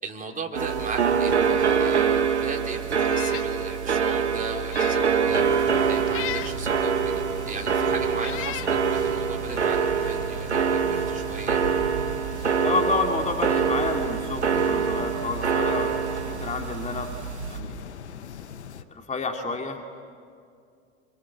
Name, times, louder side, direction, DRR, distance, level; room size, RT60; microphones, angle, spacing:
voice 1, 0.0-5.6 5.9-11.6, right 4 dB, 25° right, 1 dB, 3.5 m, -37 dB
sound 1, 0.5-17.6, right 6 dB, 90° right, 1.5 m, -25 dB
Meow, 3.0-3.5 3.9-4.0 4.6-5.1 6.1-6.6 7.5-7.6 8.2-8.7, left 16 dB, 40° left, 0.7 m, -35 dB
sound 2, 5.3-18.8, left 8 dB, 80° left, 1.0 m, -41 dB
voice 2, 12.6-15.9 16.4-17.1 17.5-17.8 18.9-20.0, left 3 dB, 20° left, 3 dB, 2.4 m, -29 dB
28.0 x 25.5 x 8.4 m, 2.3 s
figure-of-eight pair, 70°, 33 cm